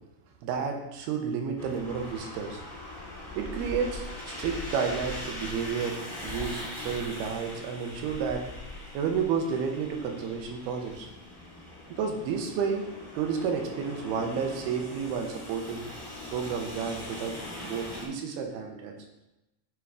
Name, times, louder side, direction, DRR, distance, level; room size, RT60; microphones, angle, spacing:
voice 1, 0.4-2.6 3.4-8.5 8.9-11.1 11.9-15.9 16.3-18.9, right 6 dB, 80° right, 3 dB, 2.6 m, -31 dB
sound 1, 1.6-18.1, left 2 dB, 20° left, 0.6 m, -41 dB
8.4 x 3.7 x 4.7 m, 0.94 s
omnidirectional pair, 4.6 m